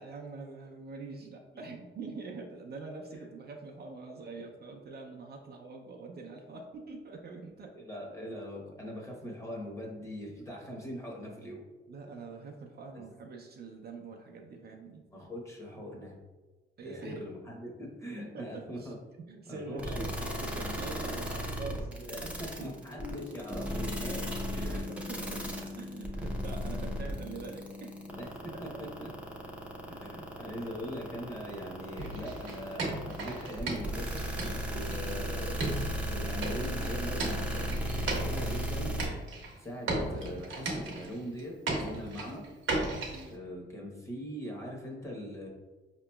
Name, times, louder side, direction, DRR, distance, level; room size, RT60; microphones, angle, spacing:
voice 1, 0.0-7.7 11.9-15.0 16.8-17.3 17.7-17.8 18.2-18.9 19.3-22.3 22.6-22.7 24.4-28.0 29.9-30.0 43.1-43.3, right 4 dB, 50° right, 1 dB, 0.5 m, -44 dB
voice 2, 7.7-11.6 12.9-13.0 15.1-16.1 16.8-19.0 19.5-20.3 20.6-20.8 22.0-24.9 27.3-27.4 28.1-28.5 28.8-29.1 29.9-34.2 34.7-35.8 36.0-38.9 39.6-42.4 43.3-45.5, equal, 15° left, -1 dB, 1.0 m, -41 dB
sound 1, 19.8-39.1, equal, 5° right, 0.6 m, -35 dB
sound 2, 23.0-28.2, left 3 dB, 50° left, 1.3 m, -42 dB
sound 3, 32.0-35.1 35.6-38.7 39.0-39.6 39.9-41.4 41.7-43.3, right 2 dB, 75° right, 0.9 m, -36 dB
4.8 x 2.9 x 2.3 m, 1.2 s
cardioid pair, 85°, 21 cm